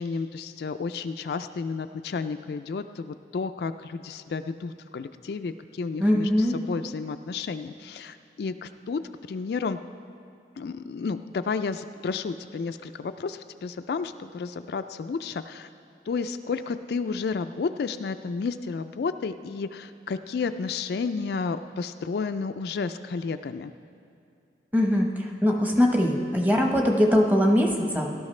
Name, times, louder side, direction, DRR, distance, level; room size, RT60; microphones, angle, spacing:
voice 1, 0.0-9.0 9.3-9.8 10.6-15.7 16.1-23.7, left 4 dB, 60° left, 9 dB, 0.3 m, -31 dB
voice 2, 6.0-6.5 24.7-28.1, equal, 10° right, 1 dB, 0.9 m, -22 dB
17.5 x 12.0 x 3.2 m, 2.5 s
head